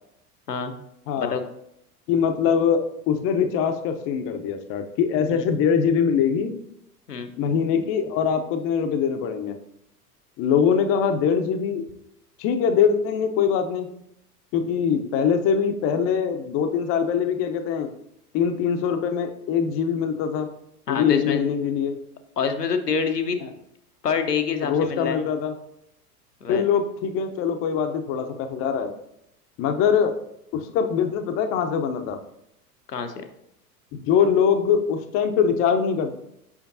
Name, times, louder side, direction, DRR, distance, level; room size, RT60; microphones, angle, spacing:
voice 1, 2.1-6.5 7.4-9.6 10.4-11.8 12.4-13.9 14.5-17.9 18.3-20.5 20.9-22.0 24.6-25.5 26.5-28.9 29.6-30.1 30.5-32.2 33.9-36.1, left 7 dB, 30° left, 7 dB, 0.6 m, -23 dB
voice 2, 20.9-21.4 22.4-23.5 24.0-25.2 26.4-26.6 32.9-33.2, left 6 dB, 85° left, 7 dB, 0.7 m, -26 dB
7.1 x 5.1 x 2.6 m, 0.77 s
figure-of-eight pair, 90°, 47 cm